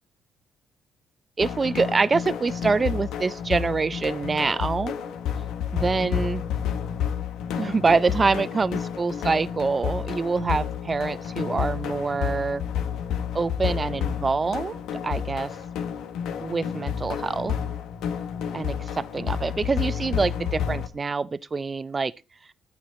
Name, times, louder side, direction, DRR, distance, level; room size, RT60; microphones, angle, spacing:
sound 1, 1.4-20.9, left 8 dB, 90° left, 1.4 m, -30 dB
voice 1, 1.4-4.9 5.7-6.4 7.6-12.6 13.3-15.5 16.4-17.5 18.5-22.1, right 4 dB, 30° right, 0.5 m, -25 dB
12.0 x 9.2 x 4.1 m
cardioid pair, 90°, 0 cm